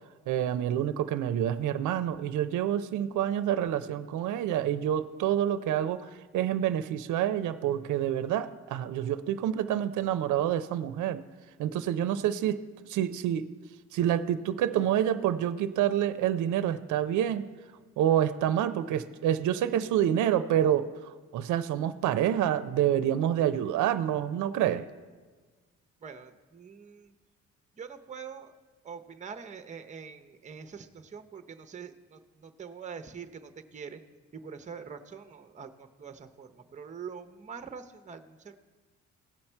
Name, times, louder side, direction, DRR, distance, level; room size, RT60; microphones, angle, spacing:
voice 1, 0.3-11.2 11.6-12.6 12.9-13.4 13.9-17.5 18.0-20.9 21.3-24.9, right 10 dB, 80° right, 12 dB, 0.5 m, -27 dB
voice 2, 26.0-27.1 27.8-28.5 28.8-34.0 34.3-38.6, right 6 dB, 25° right, 8 dB, 0.6 m, -44 dB
16.5 x 5.8 x 4.4 m, 1.4 s
cardioid pair, 90°, 30 cm